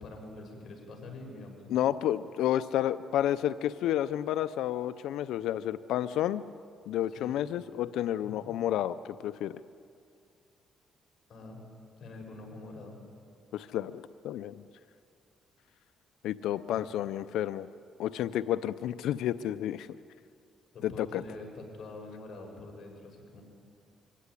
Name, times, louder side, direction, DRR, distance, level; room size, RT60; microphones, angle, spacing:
voice 1, 0.0-1.7 7.1-7.3 8.2-8.5 11.3-11.6 12.0-13.0 16.7-16.8 20.7-23.4, left 2 dB, 55° left, 1 dB, 6.5 m, -45 dB
voice 2, 1.7-6.4 6.9-9.6 13.5-14.6 16.2-17.7 18.0-19.9 20.8-21.2, left 12 dB, 85° left, 12 dB, 0.5 m, -31 dB
24.0 x 16.5 x 9.9 m, 2.3 s
cardioid pair, 90°, 0 cm